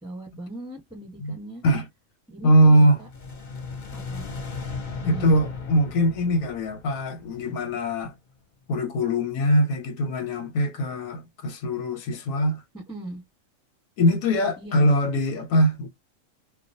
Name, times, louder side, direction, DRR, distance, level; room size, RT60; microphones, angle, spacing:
voice 1, 0.0-1.6 2.3-3.1 3.9-4.3 5.0-5.4 12.7-13.2 14.6-14.9, right 1 dB, 5° right, 0.9 m, -38 dB
voice 2, 2.4-3.0 5.0-8.1 8.7-12.6 14.0-15.9, equal, 90° left, 1.0 m, -22 dB
sound 1, 2.9-8.0, left 4 dB, 45° left, 0.7 m, -37 dB
2.3 x 2.1 x 2.6 m
omnidirectional pair, 1.4 m